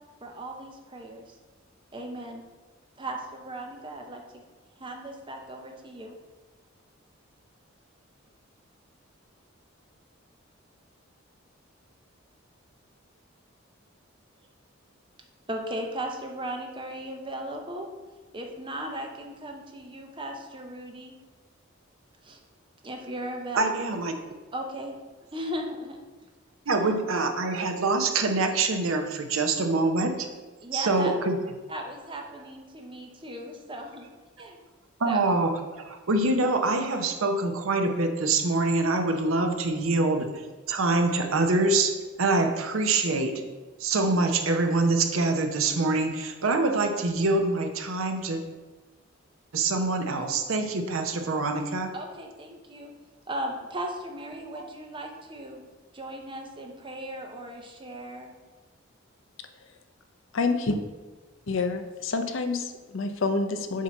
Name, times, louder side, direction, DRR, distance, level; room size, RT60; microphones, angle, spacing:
voice 1, 0.2-1.4 1.9-2.4 3.0-4.4 4.8-6.1 15.5-17.9 18.3-21.1 22.2-22.4 22.8-23.6 24.5-25.0 25.3-26.0 30.6-31.1 31.7-34.1 34.4-34.6 35.1-35.2 51.9-52.9 53.3-55.6 55.9-58.3, right 1 dB, 25° right, 2 dB, 0.7 m, -37 dB
voice 2, 23.5-24.1 26.7-30.3 30.7-31.4 35.0-40.3 40.7-43.4 43.8-48.4 49.5-51.9 54.5-54.6, right 3 dB, 75° right, 6 dB, 0.7 m, -25 dB
voice 3, 60.3-60.8 61.5-63.8, left 3 dB, 65° left, 7 dB, 0.6 m, -28 dB
7.3 x 2.8 x 5.8 m, 1.3 s
head